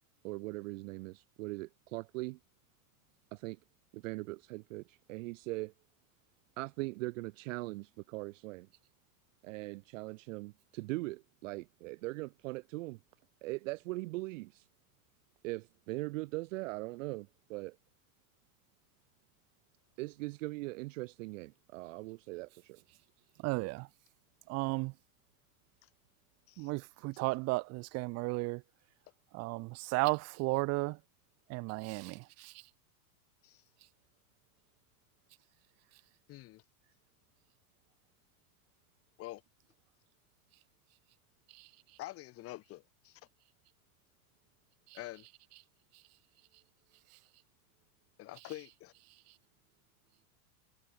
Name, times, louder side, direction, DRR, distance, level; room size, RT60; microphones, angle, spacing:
voice 1, 0.2-2.4 3.3-3.6 3.9-5.7 6.6-8.7 9.4-13.0 13.4-14.6 15.4-17.8 20.0-22.8, right 22 dB, 60° right, 0.5 m, -40 dB
voice 2, 23.4-23.9 24.5-24.9 26.6-28.6 29.3-31.0 31.5-32.6 41.5-41.7 44.9-45.0, right 25 dB, 35° right, 0.9 m, -34 dB
voice 3, 36.3-36.6 39.2-39.4 42.0-43.2 44.9-45.3 48.2-48.9, left 17 dB, 30° left, 1.5 m, -46 dB
supercardioid pair, 155°, 44 cm